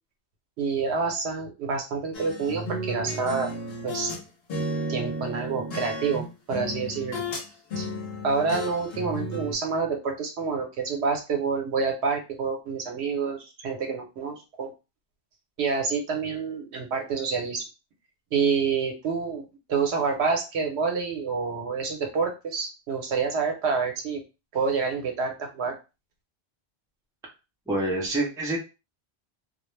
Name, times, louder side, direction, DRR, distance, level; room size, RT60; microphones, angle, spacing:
voice 1, 0.6-3.5 3.8-4.1 4.9-7.2 7.8-7.9 8.2-14.7 15.6-17.6 18.3-19.4 19.7-24.2 24.5-25.7, right 5 dB, 75° right, 3 dB, 0.9 m, -28 dB
sound 1, 2.1-4.2 4.5-7.4 7.7-9.5, equal, 65° left, 0.9 m, -33 dB
voice 2, 27.7-28.6, right 2 dB, 5° right, -1 dB, 0.4 m, -26 dB
2.3 x 2.0 x 3.0 m, 0.29 s
omnidirectional pair, 1.1 m